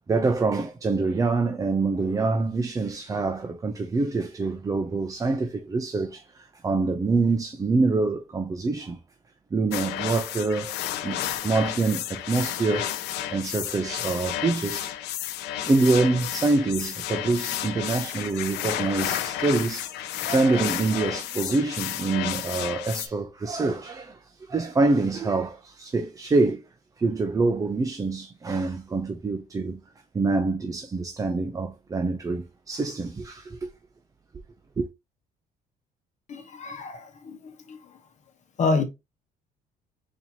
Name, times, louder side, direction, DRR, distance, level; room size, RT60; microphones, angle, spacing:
voice 1, 0.1-9.0 9.5-10.7 11.0-12.9 13.3-14.9 15.6-19.9 20.2-26.6 27.0-29.8 30.1-33.7 34.8-34.9, right 3 dB, 20° right, 0.4 m, -25 dB
sound 1, 9.7-23.1, left 12 dB, 85° left, 0.5 m, -32 dB
voice 2, 36.3-37.4 37.7-37.8 38.6-38.8, left 4 dB, 45° left, 1.0 m, -27 dB
4.2 x 2.8 x 2.8 m
cardioid pair, 110°, 17 cm